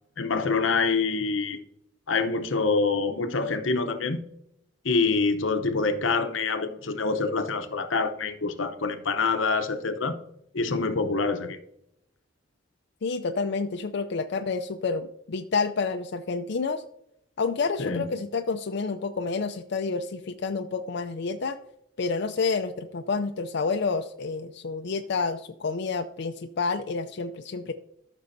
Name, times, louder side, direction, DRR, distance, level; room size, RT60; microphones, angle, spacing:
voice 1, 0.2-1.6 2.1-4.2 4.8-10.2 10.5-11.6 17.8-18.1, left 4 dB, 85° left, 9 dB, 0.8 m, -26 dB
voice 2, 13.0-16.8 17.4-21.6 22.0-27.7, left 4 dB, 60° left, 6 dB, 0.5 m, -29 dB
14.0 x 6.2 x 2.7 m, 0.78 s
head